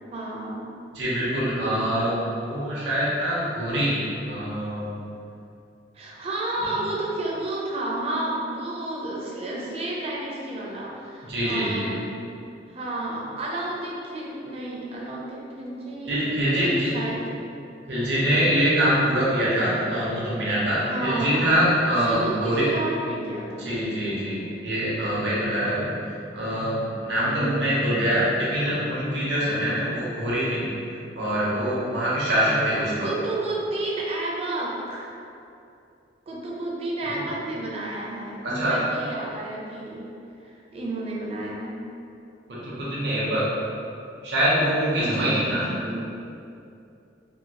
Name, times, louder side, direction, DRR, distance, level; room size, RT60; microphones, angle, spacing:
voice 1, 0.1-0.7 5.9-12.1 12.7-16.1 16.4-17.2 20.9-21.4 22.0-23.7 27.3-27.7 33.0-35.1 36.3-40.1 40.4-41.8 45.0-46.0, right 2 dB, 35° right, -4 dB, 0.5 m, -31 dB
voice 2, 0.9-5.0 6.6-6.7 11.3-11.9 16.1-17.0 17.9-22.7 23.6-30.7 31.2-33.1 37.0-37.2 38.4-38.8 42.5-43.5 44.2-45.7, equal, 70° right, -8 dB, 0.7 m, -24 dB
2.7 x 2.6 x 2.8 m, 2.6 s
head